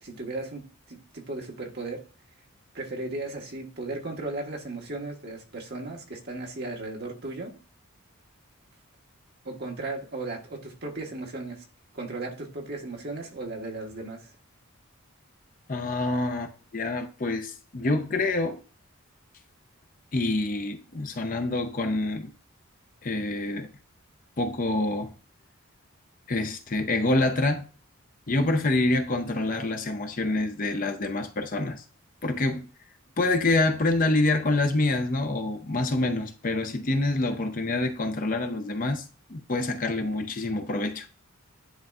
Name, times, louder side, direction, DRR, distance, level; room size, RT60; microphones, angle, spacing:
voice 1, 0.0-2.0 2.7-7.5 9.4-11.6 11.9-14.3 37.1-37.3, right 2 dB, 50° right, 1.4 m, -36 dB
voice 2, 15.7-18.6 20.1-22.3 23.0-23.7 24.4-25.1 26.3-27.7 28.3-31.8 32.2-32.7 33.2-39.0 39.3-41.1, left 2 dB, 40° left, 0.6 m, -26 dB
10.0 x 3.9 x 2.4 m
head